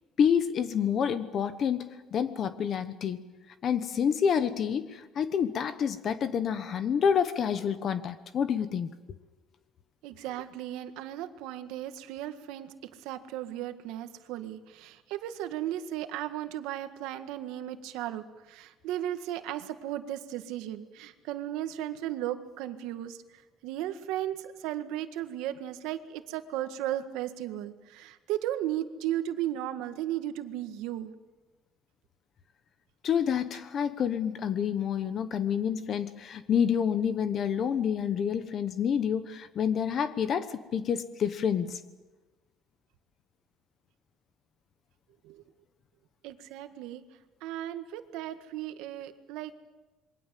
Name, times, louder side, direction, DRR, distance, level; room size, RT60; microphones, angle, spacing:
voice 1, 0.2-3.2 3.6-8.9 33.0-41.8, left 7 dB, 35° left, 12 dB, 1.0 m, -28 dB
voice 2, 10.0-23.2 23.6-31.1 45.2-45.4 46.2-47.0 47.4-49.6, right 12 dB, 90° right, 9 dB, 1.7 m, -35 dB
27.5 x 22.5 x 7.7 m, 1.2 s
cardioid pair, 170°, 0 cm